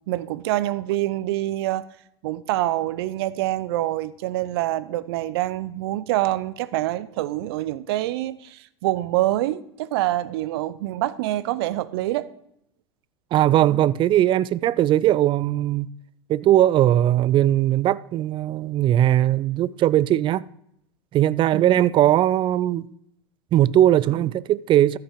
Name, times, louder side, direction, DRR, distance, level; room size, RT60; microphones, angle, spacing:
voice 1, 0.1-1.9 2.2-12.3 21.5-21.7, right 15 dB, 70° right, 0.7 m, -26 dB
voice 2, 13.3-15.9 16.3-20.4 21.1-22.8 23.5-25.0, right 12 dB, 35° right, 0.4 m, -19 dB
13.5 x 5.8 x 6.5 m
hypercardioid pair, 90°, 14 cm